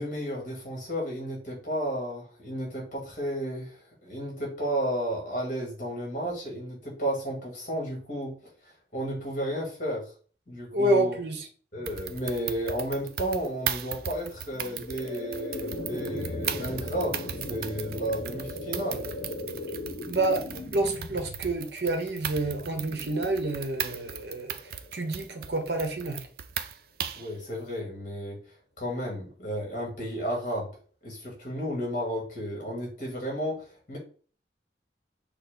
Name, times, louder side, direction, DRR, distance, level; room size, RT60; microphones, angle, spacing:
voice 1, 0.0-3.7 4.0-8.3 8.9-10.1 10.5-11.2 11.7-19.1 27.1-28.4 28.8-30.7 31.0-34.0, equal, 45° left, -1 dB, 1.7 m, -32 dB
voice 2, 10.7-11.5 20.1-24.5 24.9-26.2, right 2 dB, 75° right, 4 dB, 1.0 m, -28 dB
sound 1, 11.9-27.3, right 9 dB, 55° right, 0.4 m, -37 dB
sound 2, 14.5-25.6, left 2 dB, 65° left, 0.8 m, -38 dB
6.1 x 2.2 x 3.6 m, 0.42 s
head